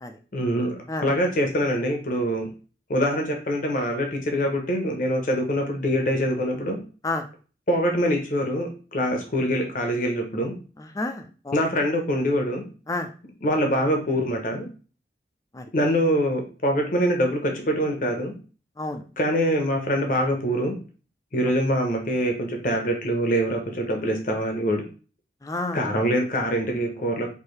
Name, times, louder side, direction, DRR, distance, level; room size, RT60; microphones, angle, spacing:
voice 1, 0.3-2.5 2.9-6.8 7.7-10.5 11.5-12.6 13.4-14.7 15.7-18.3 19.2-20.8 21.3-24.8 25.7-27.3, equal, 50° left, 2 dB, 0.9 m, -24 dB
voice 2, 10.8-11.6 12.9-13.1 15.5-15.6 18.8-19.0 25.4-25.8, left 2 dB, 20° left, 6 dB, 0.4 m, -30 dB
4.6 x 2.7 x 3.2 m, 0.37 s
head